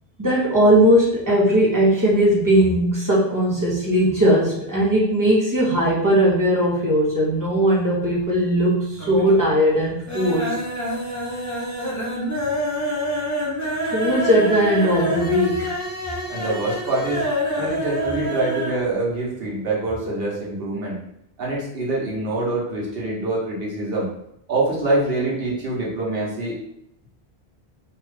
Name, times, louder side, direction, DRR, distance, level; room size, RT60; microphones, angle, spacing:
voice 1, 0.2-10.6 13.8-15.7, equal, 20° right, -6 dB, 0.8 m, -18 dB
sound 1, 8.0-8.6 8.9-9.5 9.8-18.8 19.1-19.2 19.5-19.6, equal, 20° left, 0.5 m, -27 dB
voice 2, 16.3-17.3 17.6-21.0 21.4-24.1 24.5-26.6, right 2 dB, 70° right, -4 dB, 1.2 m, -25 dB
2.9 x 2.3 x 3.2 m, 0.74 s
omnidirectional pair, 1.0 m